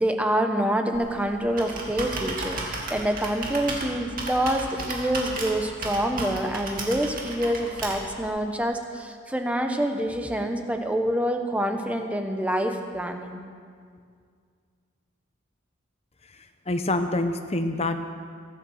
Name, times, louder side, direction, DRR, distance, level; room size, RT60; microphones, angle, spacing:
voice 1, 0.0-13.4, right 1 dB, 5° right, 5 dB, 1.0 m, -26 dB
Computer keyboard, 0.9-8.2, right 2 dB, 40° right, 2.4 m, -34 dB
voice 2, 16.7-18.0, left 2 dB, 30° left, 8 dB, 0.9 m, -26 dB
23.0 x 8.3 x 6.4 m, 2.1 s
head